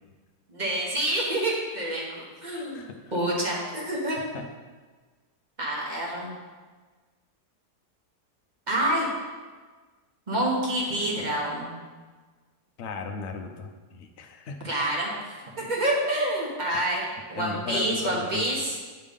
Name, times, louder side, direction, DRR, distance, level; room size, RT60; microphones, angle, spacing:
voice 1, 0.5-2.8 3.1-4.2 5.6-6.3 8.7-9.1 10.3-11.7 14.6-18.8, right 1 dB, 30° right, -3 dB, 1.5 m, -27 dB
voice 2, 2.5-2.9 4.3-4.4 12.8-14.6 17.4-18.4, left 4 dB, 60° left, 4 dB, 0.7 m, -36 dB
9.0 x 3.5 x 5.3 m, 1.4 s
omnidirectional pair, 1.7 m